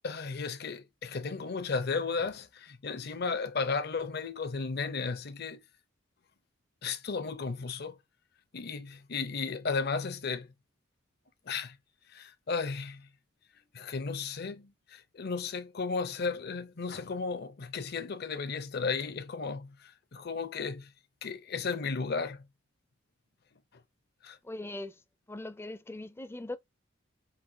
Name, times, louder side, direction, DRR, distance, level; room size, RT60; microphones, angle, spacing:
voice 1, 0.0-5.6 6.8-8.0 8.5-10.5 11.5-11.8 12.1-13.1 13.7-19.7 20.1-20.9 21.2-22.4 24.2-24.4, left 4 dB, 55° left, 0.6 m, -34 dB
voice 2, 24.4-25.0 25.3-26.6, left 2 dB, 10° left, 0.4 m, -40 dB
5.8 x 2.5 x 2.7 m
head